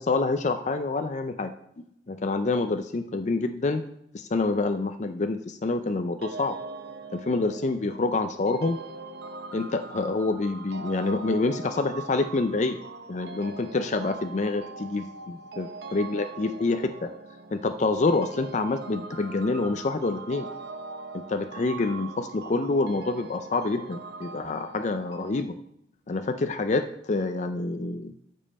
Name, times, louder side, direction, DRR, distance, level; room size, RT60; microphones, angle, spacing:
voice 1, 0.0-1.5 1.8-3.8 4.1-6.5 7.1-8.8 9.5-12.8 13.1-17.1 17.5-20.5 21.1-25.6 26.1-28.1, left 3 dB, 40° left, 8 dB, 0.5 m, -27 dB
sound 1, 6.2-25.4, right 3 dB, 60° right, 0.7 m, -42 dB
13.5 x 5.4 x 4.2 m, 0.77 s
head